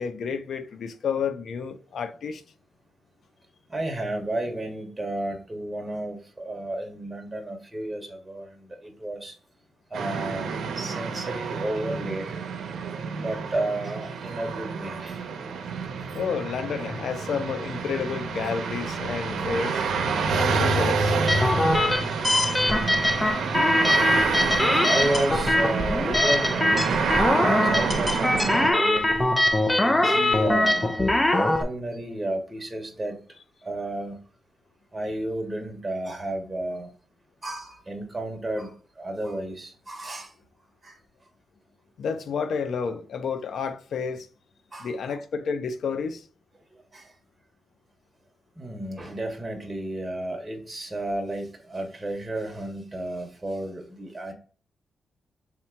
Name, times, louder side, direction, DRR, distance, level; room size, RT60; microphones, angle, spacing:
voice 1, 0.0-2.4 16.1-19.8 20.3-21.2 42.0-44.3 44.8-46.2, left 6 dB, 75° left, 0.5 m, -30 dB
voice 2, 3.7-9.3 9.9-12.4 13.2-15.2 24.9-29.3 29.8-31.0 31.3-33.2 33.6-34.2 34.9-36.9 37.4-40.3 40.8-41.0 44.7-45.2 46.9-47.1 48.6-54.3, right 1 dB, 20° right, 1.0 m, -32 dB
sound 1, 9.9-28.7, right 5 dB, 85° right, 0.6 m, -28 dB
sound 2, 21.3-31.6, left 1 dB, 15° left, 0.5 m, -22 dB
3.5 x 2.9 x 4.4 m
cardioid pair, 90°, 0 cm